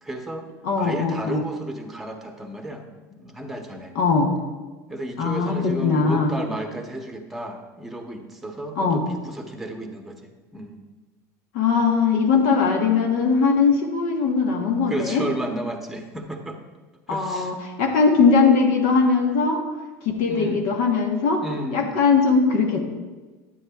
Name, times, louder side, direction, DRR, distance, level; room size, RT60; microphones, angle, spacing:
voice 1, 0.0-0.5 0.8-3.9 4.9-10.2 10.5-10.8 14.9-16.6 17.1-17.5 20.3-20.7 21.4-21.9, right 1 dB, ahead, 3 dB, 0.9 m, -33 dB
voice 2, 0.6-1.5 3.9-4.3 5.2-6.3 8.8-9.0 11.5-15.2 17.1-19.6 20.0-21.4 21.7-22.8, left 5 dB, 70° left, 1 dB, 1.2 m, -20 dB
9.8 x 9.1 x 2.4 m, 1.3 s
supercardioid pair, 125°, 8 cm